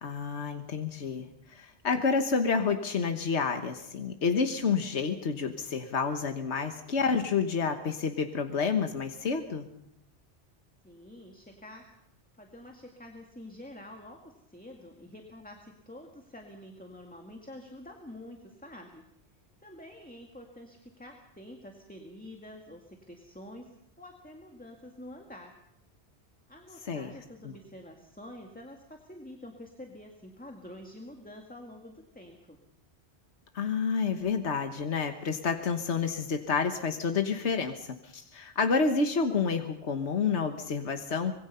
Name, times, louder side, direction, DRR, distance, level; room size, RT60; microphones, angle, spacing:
voice 1, 0.0-9.6 26.9-27.1 27.4-27.5 33.5-41.3, left 5 dB, 80° left, 6 dB, 1.6 m, -29 dB
voice 2, 10.8-11.9 12.4-19.0 19.6-23.7 24.0-25.5 26.5-32.6, left 1 dB, 5° left, 2 dB, 2.1 m, -47 dB
25.0 x 22.0 x 5.6 m, 0.76 s
omnidirectional pair, 1.1 m